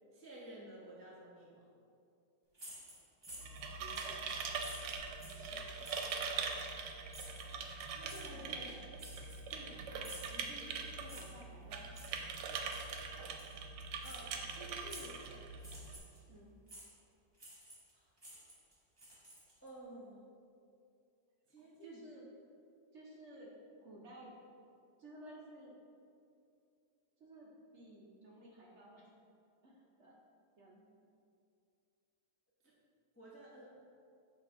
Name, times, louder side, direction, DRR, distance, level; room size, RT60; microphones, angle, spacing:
voice 1, 0.1-1.7 5.2-5.7 7.9-8.8 14.0-15.3 17.9-18.1 19.6-20.3 21.5-22.0 32.6-32.7 33.1-33.7, right 1 dB, 20° left, -6 dB, 0.3 m, -53 dB
sound 1, 2.5-3.6 3.9-4.2 4.6-5.4 5.8-6.2 7.1-7.4 8.1-8.2 9.0-9.7 10.0-10.3 11.1-11.4 11.9-12.1 12.7-13.0 13.4-13.5 14.0-14.2 14.9-15.2 15.6-16.2 16.7-16.9 17.4-17.9 18.2-19.7, right 1 dB, 15° right, 1.0 m, -52 dB
sound 2, 3.3-16.0, right 5 dB, 85° right, 1.2 m, -42 dB
voice 2, 3.8-4.3 6.5-6.6 8.3-8.8 9.5-11.9 16.3-16.5 21.6-22.3 22.9-23.5 23.8-24.4 25.0-25.7 27.2-29.0 29.6-30.2 30.6-30.8, right 1 dB, 55° right, -3 dB, 0.9 m, -55 dB
7.7 x 3.3 x 3.7 m, 2.5 s
omnidirectional pair, 1.8 m